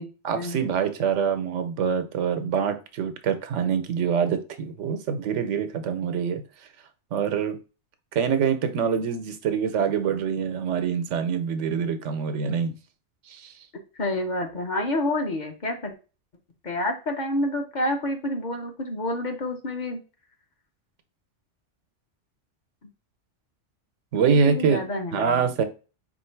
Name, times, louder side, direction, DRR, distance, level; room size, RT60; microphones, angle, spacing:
voice 1, 0.2-6.4 7.1-7.6 8.1-12.7 13.3-13.5 24.1-25.6, right 6 dB, 90° right, 9 dB, 1.0 m, -25 dB
voice 2, 14.0-15.9 16.6-20.0 24.2-25.3, left 1 dB, 45° left, 4 dB, 0.8 m, -28 dB
4.4 x 2.5 x 4.4 m, 0.33 s
omnidirectional pair, 1.2 m